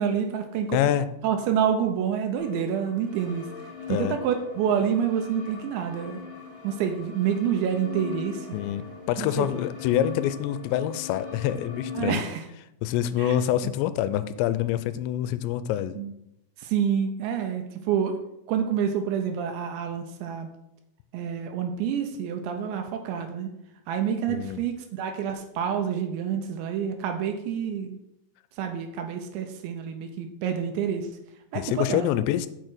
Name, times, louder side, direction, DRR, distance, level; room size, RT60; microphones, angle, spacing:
voice 1, 0.0-0.8 1.2-3.5 3.9-6.2 6.6-8.6 9.2-9.5 11.9-12.4 13.2-13.7 15.9-16.1 16.6-18.1 18.5-20.5 21.1-23.5 23.9-28.0 28.6-31.1 31.5-32.1, right 8 dB, 80° right, 5 dB, 2.9 m, -28 dB
voice 2, 0.7-1.1 3.9-4.2 8.5-12.2 12.8-16.0 24.3-24.6 31.5-32.5, left 11 dB, 85° left, 14 dB, 2.6 m, -26 dB
sound 1, 2.4-12.1, left 6 dB, ahead, 2.5 m, -40 dB
6.8 x 6.5 x 6.1 m, 0.84 s
omnidirectional pair, 5.3 m